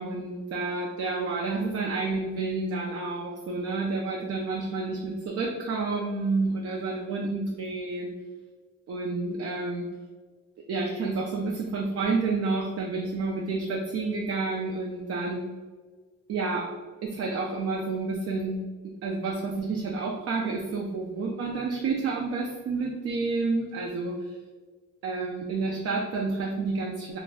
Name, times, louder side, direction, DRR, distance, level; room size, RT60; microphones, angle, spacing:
voice 1, 0.0-8.2 8.9-9.9 10.7-15.4 16.3-16.7 17.0-24.4 25.0-27.2, right 3 dB, 55° right, -1 dB, 0.4 m, -30 dB
2.3 x 2.1 x 3.4 m, 1.4 s
cardioid pair, 90°, 30 cm